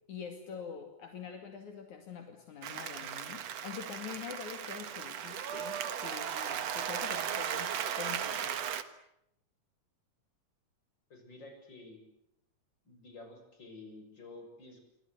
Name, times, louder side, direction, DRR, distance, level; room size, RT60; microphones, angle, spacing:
voice 1, 0.1-8.6, left 7 dB, 70° left, 5 dB, 3.7 m, -45 dB
Applause, 2.6-8.8, right 9 dB, 60° right, 2.5 m, -36 dB
voice 2, 11.1-12.0 12.9-14.8, left 2 dB, 35° left, 5 dB, 7.1 m, -50 dB
28.5 x 24.5 x 8.1 m, 0.78 s
omnidirectional pair, 3.6 m